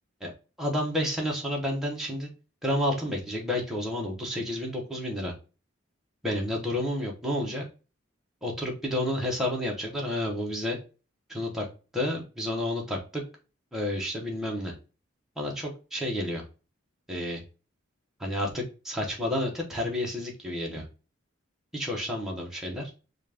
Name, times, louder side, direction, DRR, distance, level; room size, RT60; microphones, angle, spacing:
voice 1, 0.6-2.3 2.6-5.3 6.2-7.6 8.4-10.8 11.3-11.7 11.9-13.2 13.7-14.7 15.4-16.4 17.1-17.4 18.2-20.8 21.7-22.9, left 1 dB, ahead, -2 dB, 1.1 m, -30 dB
4.1 x 2.5 x 3.4 m, 0.32 s
head